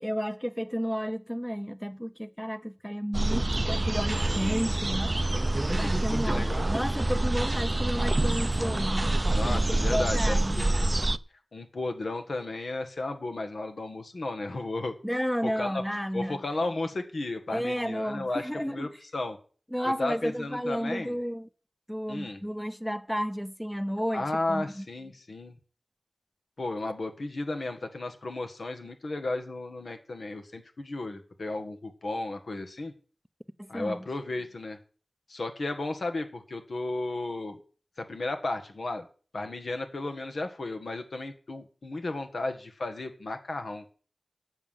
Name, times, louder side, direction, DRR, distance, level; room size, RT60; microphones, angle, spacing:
voice 1, 0.0-5.1 5.7-9.1 9.7-10.7 15.0-16.4 17.5-18.9 19.7-21.5 21.9-24.8 33.6-34.0, equal, 5° left, 0.6 m, -32 dB
sound 1, 3.1-11.2, right 2 dB, 35° right, 0.4 m, -26 dB
voice 2, 5.8-6.7 9.3-11.0 11.5-14.9 15.4-15.8 16.1-19.4 19.8-21.1 22.1-22.4 24.1-25.6 26.6-32.9 33.7-34.8 35.3-37.6 38.0-39.0 39.3-43.8, left 2 dB, 75° left, 1.7 m, -34 dB
8.1 x 7.4 x 7.4 m
cardioid pair, 45°, 0 cm